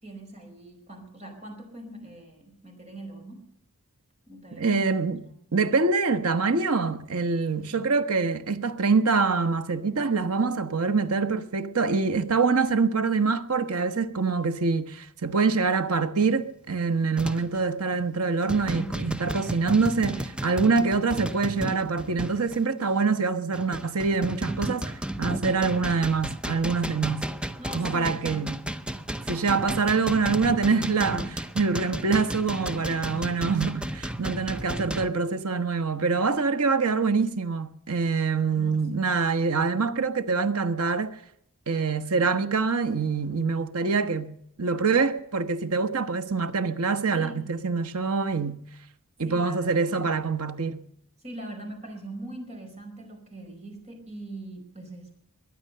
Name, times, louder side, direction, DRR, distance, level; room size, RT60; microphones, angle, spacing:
voice 1, 0.0-3.4 4.3-4.8 27.6-28.5 38.5-39.0 47.1-47.5 49.2-50.0 51.2-55.1, right 1 dB, 30° right, 4.8 m, -42 dB
voice 2, 4.5-5.2 5.5-27.3 27.7-28.6 29.3-41.1 41.7-44.3 44.6-48.6 49.2-50.8, right 4 dB, 75° right, 1.1 m, -25 dB
sound 1, 16.2-16.4 17.2-17.6 18.0-18.2 18.5-22.6 23.2-35.1, right 1 dB, 5° right, 0.6 m, -33 dB
22.0 x 9.8 x 6.7 m
head